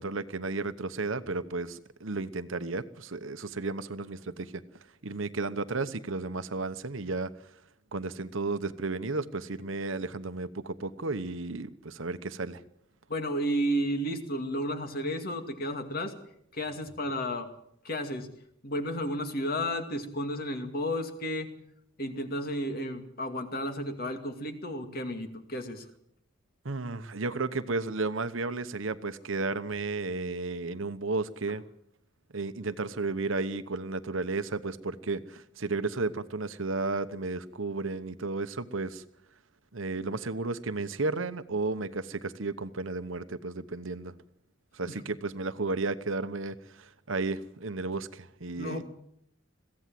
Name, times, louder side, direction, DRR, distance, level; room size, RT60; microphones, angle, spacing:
voice 1, 0.0-4.6 5.0-7.3 7.9-12.6 26.6-31.6 32.3-39.0 39.7-44.1 44.7-48.8, right 3 dB, 70° right, 12 dB, 1.1 m, -33 dB
voice 2, 13.1-16.1 16.5-17.5 17.8-18.3 18.6-21.5 22.0-25.9 44.8-45.0 48.6-48.8, equal, 45° left, 6 dB, 2.4 m, -32 dB
22.0 x 16.0 x 7.7 m, 0.74 s
head